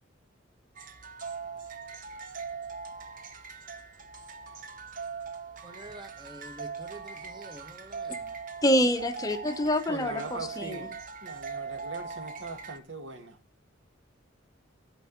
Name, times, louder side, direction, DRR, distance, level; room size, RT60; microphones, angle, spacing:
sound 1, 0.7-12.8, right 5 dB, 45° right, 0.9 m, -41 dB
voice 1, 5.6-8.2, right 2 dB, 20° right, 1.0 m, -47 dB
voice 2, 8.6-10.8, equal, 20° left, 0.7 m, -26 dB
voice 3, 9.9-13.4, right 3 dB, 70° right, 2.0 m, -41 dB
12.5 x 4.6 x 8.0 m
head